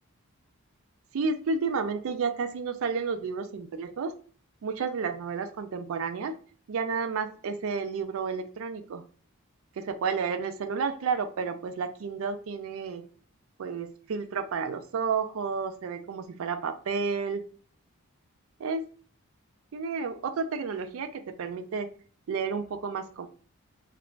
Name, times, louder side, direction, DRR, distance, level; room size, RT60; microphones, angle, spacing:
voice 1, 1.1-4.1 4.6-6.4 6.7-9.0 9.8-13.1 13.6-17.4 18.6-18.9 19.7-21.9 22.3-23.3, right 5 dB, 70° right, 8 dB, 0.3 m, -31 dB
2.4 x 2.0 x 3.1 m, 0.42 s
head